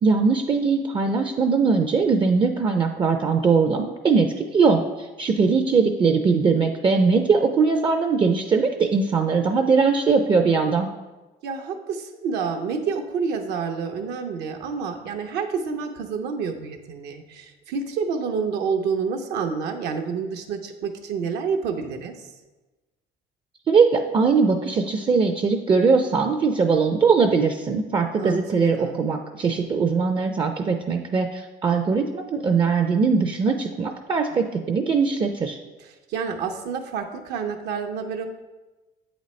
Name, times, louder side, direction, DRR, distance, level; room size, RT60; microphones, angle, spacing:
voice 1, 0.0-10.9 23.7-35.6, right 5 dB, 30° right, 5 dB, 0.4 m, -21 dB
voice 2, 11.4-22.3 28.2-28.4 28.7-29.0 35.8-38.3, right 5 dB, 75° right, 5 dB, 0.7 m, -28 dB
8.0 x 4.0 x 3.1 m, 1.1 s
cardioid pair, 110°, 17 cm